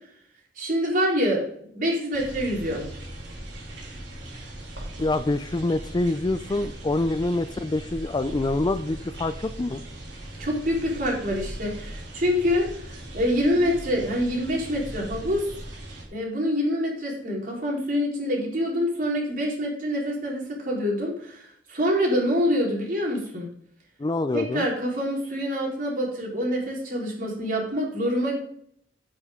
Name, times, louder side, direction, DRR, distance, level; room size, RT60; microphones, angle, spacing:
voice 1, 0.6-2.8 10.4-15.4 16.1-23.5 24.3-28.3, equal, 50° right, -2 dB, 4.1 m, -26 dB
sound 1, 2.1-16.0, right 1 dB, 80° right, 2.9 m, -39 dB
voice 2, 5.0-9.8 24.0-24.7, left 2 dB, 25° left, 13 dB, 0.4 m, -26 dB
9.8 x 9.4 x 3.8 m, 0.66 s
head